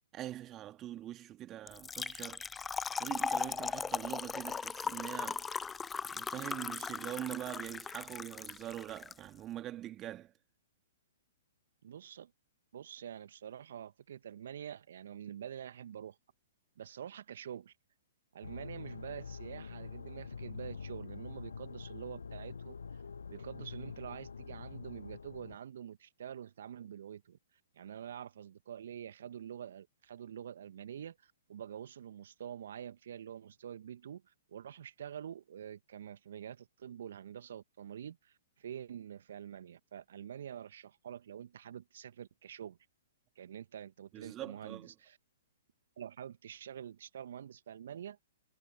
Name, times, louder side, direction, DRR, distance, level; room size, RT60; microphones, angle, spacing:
voice 1, 0.1-2.6 3.0-5.5 6.0-10.3 44.1-44.9, right 13 dB, 25° right, 1.8 m, -43 dB
Trickle dribble / Fill (with liquid), 1.7-9.1, left 5 dB, 10° left, 0.4 m, -38 dB
voice 2, 11.8-12.3 12.7-16.2 16.8-17.7 18.3-23.0 23.3-27.4 27.7-42.8 43.3-45.2 46.0-48.2, right 9 dB, 60° right, 1.2 m, -46 dB
sound 1, 18.4-25.6, left 5 dB, 75° left, 0.4 m, -45 dB
figure-of-eight pair, 115°, 0 cm